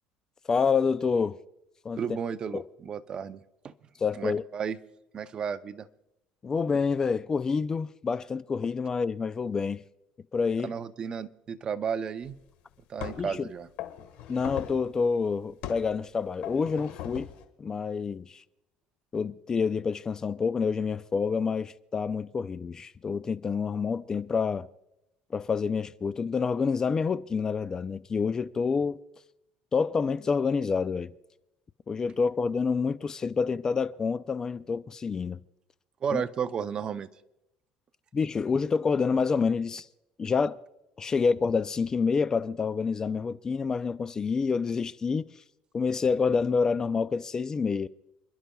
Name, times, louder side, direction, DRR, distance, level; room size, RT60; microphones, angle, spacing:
voice 1, 0.5-1.4 1.8-2.0 2.5-2.6 4.0-4.4 6.4-9.8 10.3-10.7 13.2-13.5 14.3-17.3 17.6-18.4 19.1-24.7 25.3-29.0 29.7-31.1 31.9-35.4 36.1-36.2 38.1-39.9 40.2-40.6 41.0-45.3 45.7-47.9, left 5 dB, 25° left, 0.4 m, -28 dB
voice 2, 2.0-3.4 3.6-3.7 4.2-4.8 5.1-5.9 10.6-12.4 12.9-13.7 36.0-37.1, right 7 dB, 35° right, 0.6 m, -33 dB
sound 1, 12.3-12.4 13.0-13.4 13.8-14.9 15.6-15.9 16.4-17.4, left 11 dB, 75° left, 1.5 m, -39 dB
29.5 x 11.5 x 2.3 m
cardioid pair, 125°, 2 cm